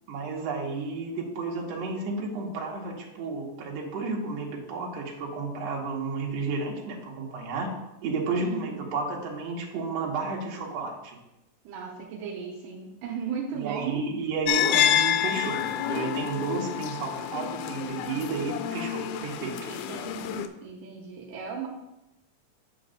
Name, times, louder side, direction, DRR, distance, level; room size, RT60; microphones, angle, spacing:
voice 1, 0.1-7.7 8.0-11.2 13.6-19.7, right 4 dB, 60° right, -2 dB, 2.0 m, -32 dB
voice 2, 8.4-8.9 11.6-14.0 19.7-21.7, right 6 dB, 75° right, 0 dB, 2.4 m, -36 dB
sound 1, 14.5-20.5, left 11 dB, 80° left, 1.9 m, -28 dB
8.8 x 3.2 x 6.3 m, 0.92 s
omnidirectional pair, 4.1 m